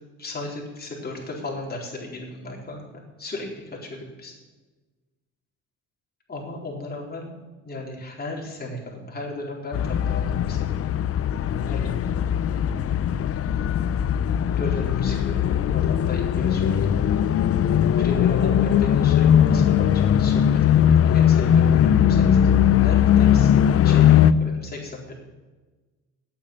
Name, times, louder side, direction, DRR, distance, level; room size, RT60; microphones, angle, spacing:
voice 1, 0.2-4.3 6.3-7.3 7.6-10.7 11.6-12.0 14.6-17.2 18.0-23.5 23.8-25.1, left 2 dB, 30° left, -2 dB, 4.1 m, -35 dB
sound 1, 9.7-24.3, left 9 dB, 50° left, 0.6 m, -19 dB
8.8 x 8.7 x 8.5 m, 1.2 s
cardioid pair, 90°, 30 cm